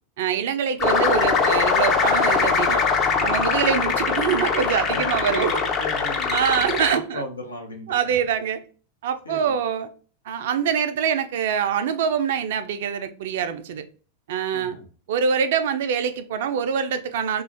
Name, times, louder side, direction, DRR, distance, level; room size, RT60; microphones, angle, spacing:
voice 1, 0.2-2.8 3.2-5.6 6.3-7.2 7.9-8.6 9.0-9.9 10.3-13.8 14.3-14.8 15.1-17.4, right 7 dB, 55° right, 0.3 m, -24 dB
sound 1, 0.8-6.9, left 5 dB, 30° left, 0.5 m, -22 dB
voice 2, 4.9-8.2 9.2-9.5 14.5-14.9, equal, 75° left, 0.7 m, -36 dB
2.4 x 2.3 x 3.2 m
figure-of-eight pair, 90°, 0 cm